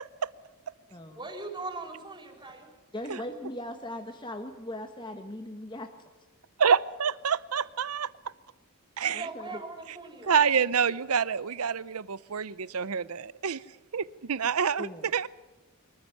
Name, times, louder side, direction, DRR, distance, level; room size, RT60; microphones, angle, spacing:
voice 1, 1.1-2.7 9.0-10.3, right 3 dB, 20° right, 3 dB, 4.0 m, -40 dB
voice 2, 2.9-5.9 9.1-9.6 14.8-15.1, left 1 dB, 20° left, 5 dB, 1.3 m, -39 dB
voice 3, 6.6-8.1 9.0-9.3 10.3-13.6 13.9-15.3, right 6 dB, 75° right, 19 dB, 0.7 m, -27 dB
23.5 x 14.5 x 9.3 m, 1.1 s
head